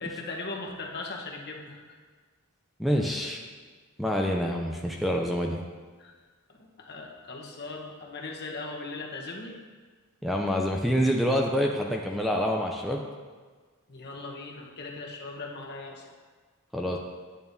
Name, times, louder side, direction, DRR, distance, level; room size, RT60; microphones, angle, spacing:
voice 1, 0.0-2.0 6.0-6.1 6.5-9.6 13.9-16.1, left 3 dB, 50° left, -1 dB, 1.1 m, -39 dB
voice 2, 2.8-3.4 4.0-5.6 10.2-13.0 16.7-17.0, equal, ahead, 0 dB, 0.4 m, -26 dB
9.1 x 8.6 x 2.7 m, 1.5 s
head